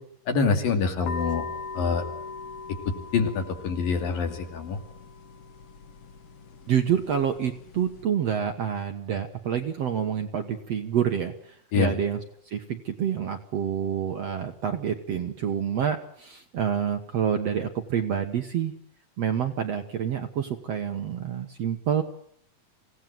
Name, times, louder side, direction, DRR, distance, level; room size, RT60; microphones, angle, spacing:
voice 1, 0.3-1.4 1.7-2.0 2.9-4.8 11.7-11.9, left 5 dB, 65° left, 5 dB, 4.5 m, -25 dB
sound 1, 1.0-8.0, left 4 dB, 85° left, 1.3 m, -40 dB
voice 2, 6.7-12.2 12.5-18.7 19.2-22.0, right 8 dB, 60° right, 6 dB, 1.9 m, -28 dB
26.0 x 17.5 x 7.7 m, 0.68 s
omnidirectional pair, 4.3 m